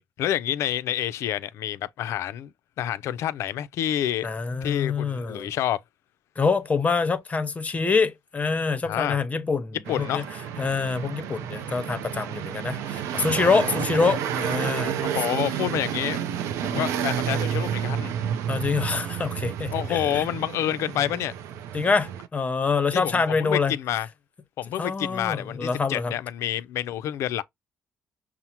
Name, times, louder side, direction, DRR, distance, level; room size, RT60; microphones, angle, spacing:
voice 1, 0.0-2.5 2.8-4.3 4.6-5.8 8.8-9.2 9.9-10.3 15.0-16.2 16.6-18.1 19.7-21.3 22.9-24.1 24.6-27.4, left 12 dB, 80° left, 0.3 m, -28 dB
voice 2, 4.2-5.5 6.4-10.2 10.6-15.0 16.7-16.8 18.5-20.2 21.7-23.7 24.8-26.1, left 4 dB, 30° left, 0.7 m, -25 dB
sound 1, 9.8-22.3, right 9 dB, 90° right, 0.4 m, -30 dB
5.7 x 2.0 x 2.8 m
cardioid pair, 80°, 5 cm